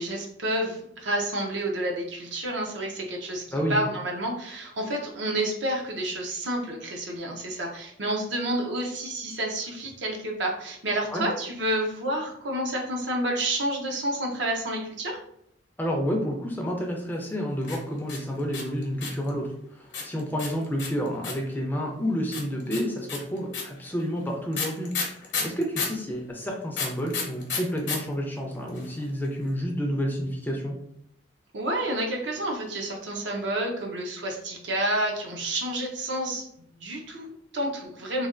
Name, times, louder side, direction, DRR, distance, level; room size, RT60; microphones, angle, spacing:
voice 1, 0.0-3.4 3.7-15.2 31.5-38.3, right 1 dB, 65° right, 0 dB, 0.6 m, -29 dB
voice 2, 15.8-30.7, equal, 10° left, 0 dB, 0.4 m, -30 dB
sound 1, 17.6-19.3 19.9-21.5 22.3-26.0 26.7-28.0 28.2-28.3 28.5-29.0, left 5 dB, 70° left, 0.8 m, -31 dB
3.2 x 2.2 x 2.4 m, 0.71 s
head